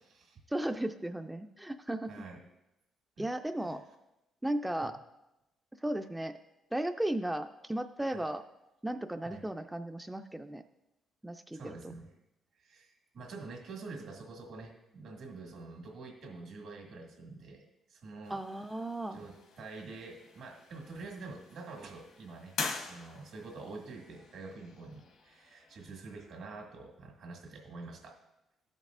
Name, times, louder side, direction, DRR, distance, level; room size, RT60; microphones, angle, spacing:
voice 1, 0.5-2.1 3.2-3.8 4.4-4.9 5.8-6.3 6.7-8.4 8.8-10.6 11.2-11.8 18.3-19.2, right 1 dB, 10° right, 7 dB, 0.3 m, -35 dB
voice 2, 2.1-2.4 3.2-3.3 3.6-3.8 4.8-4.9 8.1-8.2 9.2-9.4 11.5-12.1 12.5-18.4 19.1-22.6 22.9-28.2, right 3 dB, 75° right, 1 dB, 1.9 m, -47 dB
sound 1, 18.2-26.7, left 4 dB, 80° left, 1.1 m, -45 dB
13.5 x 5.4 x 2.5 m, 0.94 s
cardioid pair, 90°, 0 cm